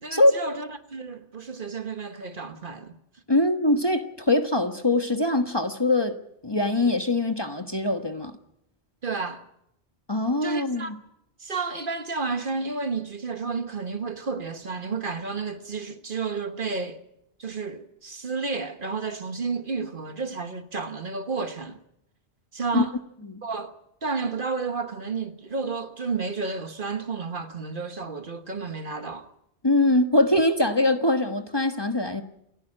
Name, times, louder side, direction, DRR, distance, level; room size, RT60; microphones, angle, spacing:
voice 1, 0.0-2.9 9.0-9.4 10.4-10.9 11.4-17.0 17.4-21.8 22.5-22.9 23.4-23.7 24.0-29.3, right 4 dB, 50° right, 1.4 m, -31 dB
voice 2, 3.3-6.2 6.4-8.3 10.1-11.0 22.7-22.8 23.2-23.4 29.6-32.2, left 2 dB, 20° left, 1.3 m, -22 dB
28.5 x 11.0 x 9.9 m
omnidirectional pair, 1.2 m